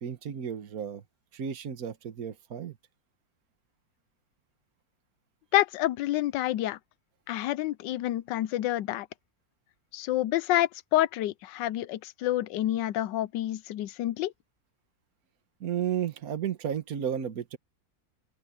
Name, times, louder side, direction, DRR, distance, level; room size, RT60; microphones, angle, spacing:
voice 1, 0.0-1.0 1.3-2.8 15.6-17.6, right 9 dB, 55° right, 1.7 m, -33 dB
voice 2, 5.5-6.8 7.3-9.1 9.9-14.3, left 14 dB, 80° left, 1.3 m, -28 dB
open air
omnidirectional pair, 1.9 m